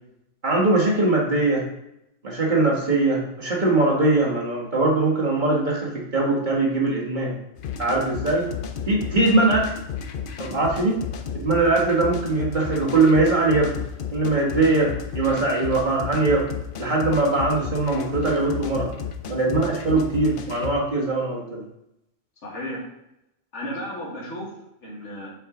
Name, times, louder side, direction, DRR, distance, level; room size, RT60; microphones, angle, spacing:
voice 1, 0.4-1.6 2.2-7.3 7.8-8.5 8.9-9.7 10.4-11.0 11.3-13.7 14.1-16.5 16.8-18.9 19.3-21.6, right 2 dB, 40° right, -3 dB, 1.6 m, -21 dB
sound 1, 7.6-20.7, left 7 dB, 55° left, 0.7 m, -33 dB
voice 2, 22.4-22.9 23.5-25.3, equal, 70° left, -3 dB, 2.0 m, -34 dB
6.6 x 4.8 x 3.8 m, 0.84 s
omnidirectional pair, 1.3 m